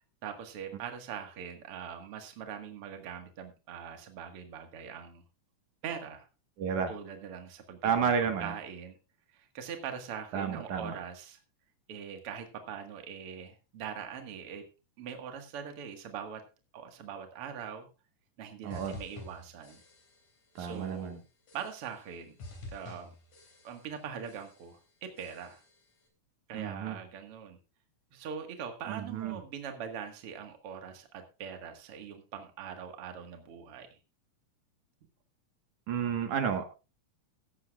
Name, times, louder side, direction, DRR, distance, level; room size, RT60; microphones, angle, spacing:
voice 1, 0.2-5.2 5.8-6.3 6.9-9.0 9.3-11.4 11.9-14.6 15.0-16.4 16.7-17.9 18.4-19.8 20.6-21.2 21.5-22.4 22.7-23.1 23.6-25.6 26.5-27.6 28.1-34.0, right 7 dB, 50° right, 5 dB, 2.4 m, -42 dB
voice 2, 6.6-6.9 7.8-8.5 10.3-10.9 18.6-19.0 20.6-21.2 26.5-27.0 28.9-29.4 35.9-36.7, right 7 dB, 70° right, 6 dB, 2.9 m, -31 dB
sound 1, 18.7-20.3 20.6-21.1 21.5-22.1 22.4-24.0 24.2-24.8 25.2-25.8, left 2 dB, 65° left, 4.7 m, -50 dB
16.0 x 12.0 x 2.4 m, 0.30 s
omnidirectional pair, 3.7 m